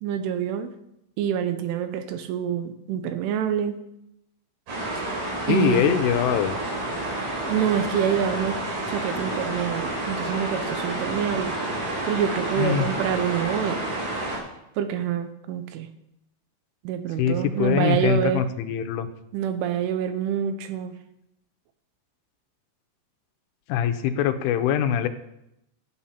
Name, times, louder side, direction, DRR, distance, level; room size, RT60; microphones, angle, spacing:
voice 1, 0.0-0.7 1.2-3.8 5.0-5.1 5.5-6.0 7.5-8.6 8.9-11.6 12.1-13.8 14.8-15.9 16.8-18.5 19.3-21.0, right 8 dB, 80° right, 9 dB, 3.3 m, -26 dB
sound 1, 4.7-14.4, right 1 dB, 60° right, 6.2 m, -29 dB
voice 2, 5.5-6.6 12.6-12.9 17.2-19.1 23.7-25.1, left 9 dB, 85° left, 8 dB, 3.2 m, -23 dB
12.5 x 8.8 x 5.7 m, 0.84 s
omnidirectional pair, 5.6 m